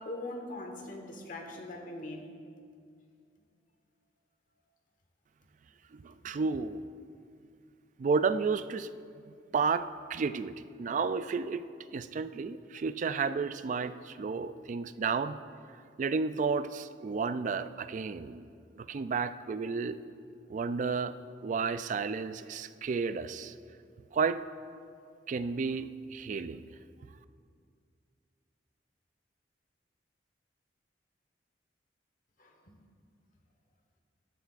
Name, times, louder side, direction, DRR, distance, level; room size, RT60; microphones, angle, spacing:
voice 1, 0.0-2.2 32.4-32.5, left 2 dB, 50° left, 3 dB, 1.2 m, -41 dB
voice 2, 5.9-6.8 8.0-8.9 9.5-11.6 11.9-15.4 16.0-18.5 18.8-20.0 20.5-21.1 21.4-23.5 24.1-24.4 25.3-26.6, right 5 dB, 45° right, 13 dB, 0.3 m, -32 dB
14.0 x 11.5 x 2.5 m, 2.2 s
head